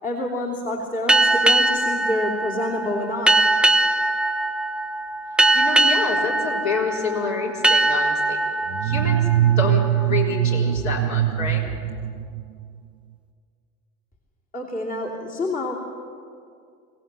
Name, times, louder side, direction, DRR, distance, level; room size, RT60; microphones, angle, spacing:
voice 1, 0.0-3.4 14.5-15.7, left 1 dB, 20° left, -3 dB, 2.9 m, -27 dB
sound 1, 1.1-10.4, right 2 dB, ahead, 0.8 m, -21 dB
voice 2, 5.5-8.4 8.8-11.6, left 4 dB, 40° left, -1 dB, 4.0 m, -28 dB
sound 2, 8.7-12.8, right 12 dB, 60° right, 0.8 m, -22 dB
23.0 x 17.0 x 7.6 m, 2.3 s
figure-of-eight pair, 70°, 43 cm